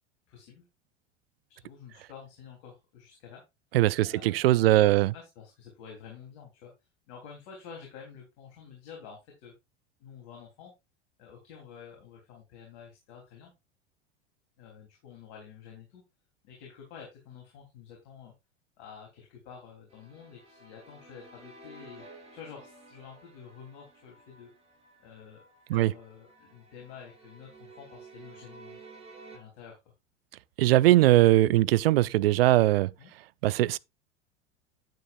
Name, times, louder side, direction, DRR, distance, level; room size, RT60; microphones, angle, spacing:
voice 1, 0.3-0.7 1.6-3.4 4.0-6.7 7.1-9.5 10.0-10.7 11.2-13.5 14.6-16.0 16.4-18.3 18.8-24.5 25.0-25.4 25.7-28.8 29.3-29.8 33.0-33.1, left 7 dB, 50° left, 3.4 m, -49 dB
voice 2, 3.7-5.1 25.7-25.9 30.6-32.9 33.4-33.8, right 15 dB, 60° right, 0.5 m, -21 dB
sound 1, 19.9-29.4, right 3 dB, 15° right, 3.5 m, -53 dB
10.5 x 9.1 x 2.5 m
figure-of-eight pair, 80°, 35 cm